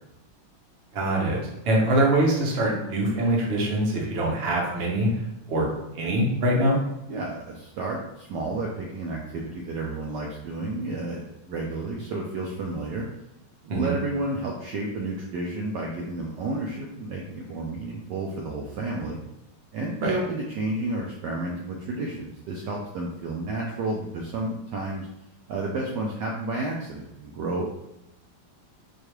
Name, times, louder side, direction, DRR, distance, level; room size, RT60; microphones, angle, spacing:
voice 1, 0.9-1.4 1.6-5.1 5.5-5.7 5.9-6.8 13.7-13.9 20.0-20.1, right 1 dB, 65° right, -2 dB, 0.6 m, -23 dB
voice 2, 7.1-13.0 13.6-19.2 19.7-25.1 25.5-27.7, right 2 dB, 90° right, -2 dB, 0.9 m, -31 dB
4.7 x 2.3 x 3.0 m, 0.91 s
omnidirectional pair, 2.4 m